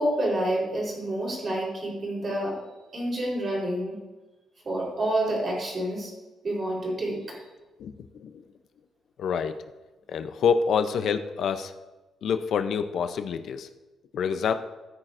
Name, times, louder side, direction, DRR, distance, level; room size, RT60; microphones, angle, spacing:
voice 1, 0.0-2.5 2.9-4.0 4.6-6.1 6.4-7.2, right 1 dB, 35° right, -3 dB, 3.7 m, -28 dB
voice 2, 7.8-8.4 9.2-9.5 10.1-11.7 12.2-13.7 14.1-14.5, left 6 dB, 60° left, 9 dB, 0.5 m, -27 dB
14.0 x 9.0 x 2.5 m, 1.1 s
cardioid pair, 150°, 0 cm